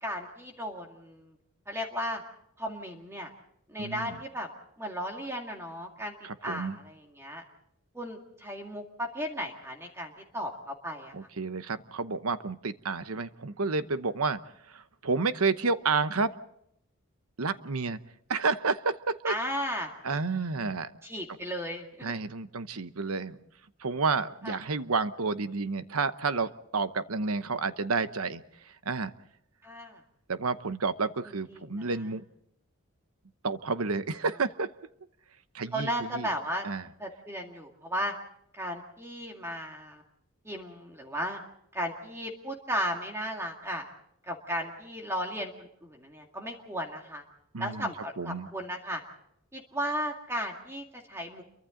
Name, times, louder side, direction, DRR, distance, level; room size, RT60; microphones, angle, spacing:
voice 1, 0.0-1.3 1.7-2.2 2.6-3.3 3.7-4.5 4.8-6.1 6.4-7.4 7.9-11.1 19.3-19.9 21.0-22.1 24.4-24.6 29.6-30.0 31.5-31.9 35.7-36.7 37.0-38.1 38.5-40.0 40.4-41.4 41.7-43.9 44.3-47.2 47.6-49.0 49.5-51.4, equal, 10° right, 2 dB, 2.1 m, -35 dB
voice 2, 3.8-4.2 6.2-6.8 11.1-14.4 14.7-16.3 17.4-18.0 18.3-19.3 20.0-20.9 22.0-23.4 23.8-29.1 30.3-32.2 33.4-34.7 35.5-36.3 36.6-36.8 47.5-47.9 48.2-48.5, right 4 dB, 80° right, 12 dB, 0.9 m, -30 dB
29.5 x 23.5 x 3.9 m, 0.73 s
head